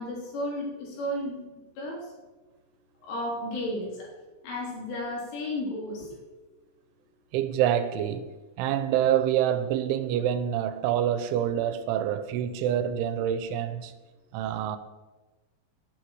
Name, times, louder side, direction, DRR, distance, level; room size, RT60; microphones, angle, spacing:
voice 1, 0.0-1.4 1.8-2.0 3.0-4.1 4.4-6.2, left 1 dB, 80° left, 6.2 m, -33 dB
voice 2, 7.3-8.3 8.6-13.9 14.3-14.8, right 10 dB, 85° right, 3.1 m, -26 dB
16.5 x 8.7 x 4.7 m
omnidirectional pair, 5.5 m